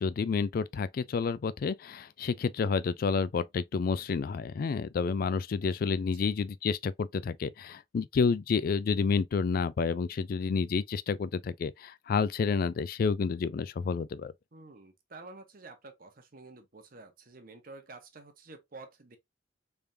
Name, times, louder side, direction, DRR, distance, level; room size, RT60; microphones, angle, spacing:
voice 1, 0.0-14.3, left 5 dB, 50° left, 0.3 m, -29 dB
voice 2, 14.5-19.2, right 3 dB, 50° right, 0.9 m, -50 dB
3.4 x 3.4 x 2.6 m
head